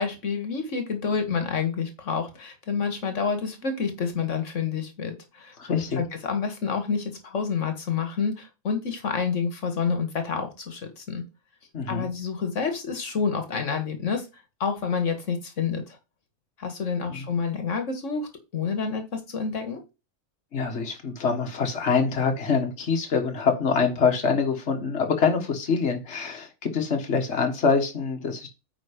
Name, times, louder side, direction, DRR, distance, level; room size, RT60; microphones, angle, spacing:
voice 1, 0.0-11.2 11.9-14.3 14.6-16.0 16.6-19.8, left 5 dB, 80° left, 1.8 m, -28 dB
voice 2, 5.6-6.0 11.7-12.1 17.1-17.3 20.5-28.5, left 5 dB, 65° left, 1.7 m, -25 dB
9.2 x 3.6 x 5.0 m
omnidirectional pair, 1.2 m